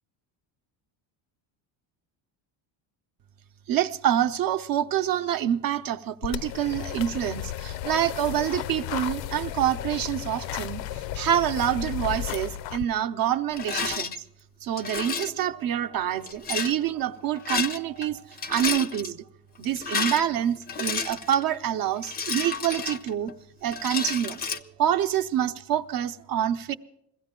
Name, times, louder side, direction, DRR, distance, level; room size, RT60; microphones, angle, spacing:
voice 1, 3.7-14.1 14.6-19.2 19.6-23.3 23.6-26.7, right 10 dB, 50° right, 0.8 m, -27 dB
sound 1, 6.2-12.8, left 12 dB, 70° left, 0.6 m, -34 dB
Rattle, 13.5-14.2 14.8-15.4 16.3-16.7 17.4-18.1 18.3-19.1 19.6-21.4 22.0-23.3 23.7-24.6, left 5 dB, 20° left, 0.5 m, -31 dB
22.0 x 16.0 x 3.7 m
cardioid pair, 150°, 46 cm